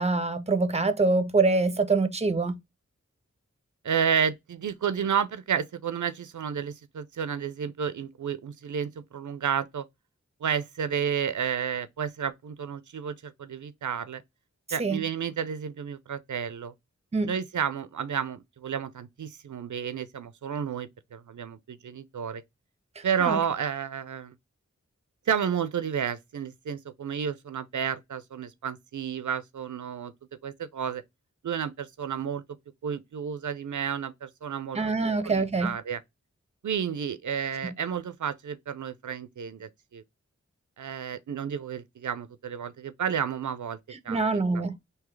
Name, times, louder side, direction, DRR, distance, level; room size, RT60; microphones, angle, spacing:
voice 1, 0.0-2.6 14.8-15.0 17.1-17.3 23.0-23.4 34.7-35.7 37.6-37.7 44.1-44.8, right 3 dB, 20° right, 0.6 m, -25 dB
voice 2, 3.8-9.8 10.4-14.2 14.7-16.7 17.2-22.4 23.0-24.3 25.3-30.1 30.4-31.0 31.4-32.4 32.8-34.8 35.2-36.0 36.6-40.0 40.8-43.8 44.0-44.2, right 7 dB, 80° right, 0.5 m, -31 dB
3.8 x 2.8 x 3.1 m
wide cardioid pair, 45°, 30 cm